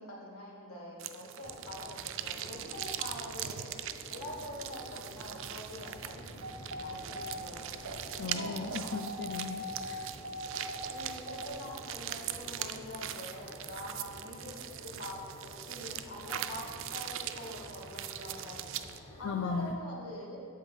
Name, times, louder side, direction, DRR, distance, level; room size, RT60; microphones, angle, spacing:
voice 1, 0.0-3.7 4.1-6.3 6.8-7.6 8.2-9.0 10.9-18.6 19.2-20.4, equal, 75° left, -3 dB, 1.9 m, -44 dB
sound 1, 1.0-19.0, right 11 dB, 60° right, 0.3 m, -41 dB
sound 2, 1.4-19.7, left 1 dB, 25° left, 0.7 m, -50 dB
sound 3, 6.4-11.5, left 1 dB, 80° right, 0.8 m, -42 dB
voice 2, 8.2-10.1 19.2-19.7, left 5 dB, 55° left, 6 dB, 0.3 m, -37 dB
8.1 x 7.2 x 3.9 m, 2.2 s
head